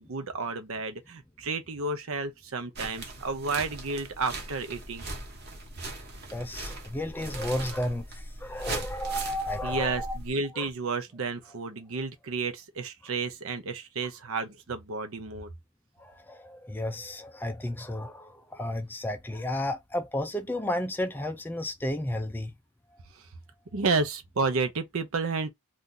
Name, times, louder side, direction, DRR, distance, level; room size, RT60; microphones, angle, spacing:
voice 1, 0.0-5.1 9.6-15.5 23.2-23.3 23.7-25.5, right 4 dB, 70° right, 0.7 m, -31 dB
sound 1, 2.8-10.3, right 2 dB, 45° right, 0.9 m, -39 dB
voice 2, 6.3-10.2 10.6-10.7 16.0-22.5, left 1 dB, 10° left, 0.3 m, -33 dB
2.7 x 2.4 x 3.7 m
head